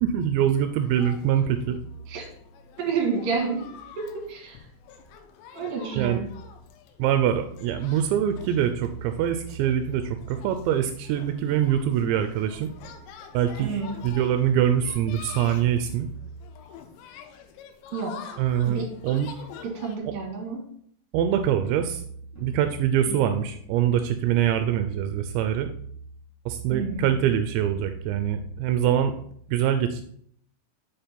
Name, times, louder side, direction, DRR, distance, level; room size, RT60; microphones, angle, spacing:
voice 1, 0.0-1.8 6.0-6.2 7.0-12.7 13.3-13.7 14.0-16.1 18.4-19.3 21.1-22.0 22.4-25.7 26.5-29.1 29.5-30.0, right 10 dB, 85° right, 8 dB, 2.8 m, -24 dB
sound 1, 0.5-20.0, left 7 dB, 80° left, 3.0 m, -47 dB
voice 2, 2.8-3.7 4.0-4.7 5.5-6.2 13.6-13.9 17.9-18.1 18.6-18.9 19.6-20.6 23.1-23.2 26.7-27.1, right 5 dB, 60° right, 0 dB, 3.2 m, -29 dB
sound 2, 22.4-25.6, left 6 dB, 35° left, 1.9 m, -48 dB
7.6 x 5.2 x 4.4 m, 0.64 s
omnidirectional pair, 5.1 m